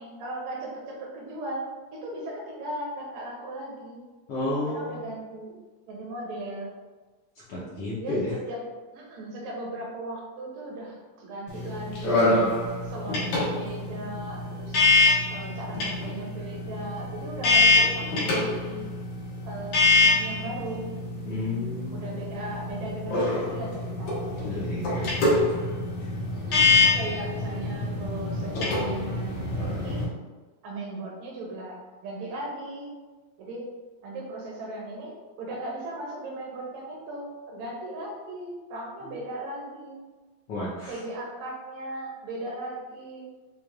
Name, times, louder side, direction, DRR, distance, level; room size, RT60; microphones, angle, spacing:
voice 1, 0.0-4.0 4.7-5.6 5.9-6.7 8.0-8.2 8.5-8.6 8.9-12.5 12.8-14.8 15.3-18.8 19.5-20.9 21.9-24.3 26.3-30.0 30.6-32.9 33.4-33.6 34.0-40.0 40.9-43.3, right 1 dB, 80° right, -1 dB, 1.8 m, -37 dB
voice 2, 4.3-5.0 7.5-8.3 21.2-22.1 24.4-25.4 26.0-26.1 40.5-40.9, left 1 dB, 75° left, -8 dB, 1.3 m, -32 dB
sound 1, 11.5-30.0, left 3 dB, 90° left, 2.5 m, -25 dB
6.2 x 2.3 x 2.3 m, 1.3 s
omnidirectional pair, 3.3 m